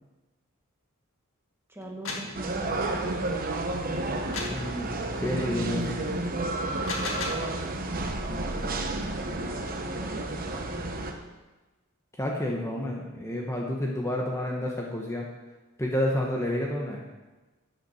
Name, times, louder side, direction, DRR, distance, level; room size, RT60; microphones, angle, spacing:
voice 1, 1.7-3.2 8.4-11.0, right 1 dB, 10° right, -1 dB, 1.6 m, -43 dB
sound 1, 1.8-2.4 4.3-4.7 6.6-7.5, left 3 dB, 70° left, 1.8 m, -34 dB
sound 2, 2.3-11.1, right 2 dB, 45° right, 1.1 m, -31 dB
voice 2, 4.5-6.0 12.2-15.2 15.8-17.0, left 1 dB, 15° left, -2 dB, 1.2 m, -30 dB
13.0 x 8.5 x 4.4 m, 1.2 s
head